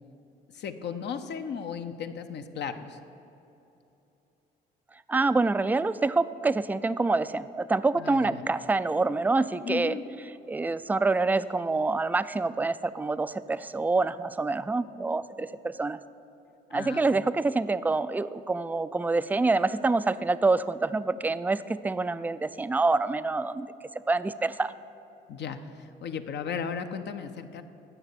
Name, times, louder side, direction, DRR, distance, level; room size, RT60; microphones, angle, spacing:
voice 1, 0.5-3.0 8.0-8.4 9.6-10.0 16.7-17.1 25.3-27.6, left 7 dB, 55° left, 8 dB, 0.8 m, -35 dB
voice 2, 5.1-10.0 10.5-16.0 16.7-23.7 24.1-24.7, right 3 dB, 10° right, 14 dB, 0.3 m, -26 dB
9.0 x 6.6 x 8.1 m, 2.9 s
supercardioid pair, 60°, 21 cm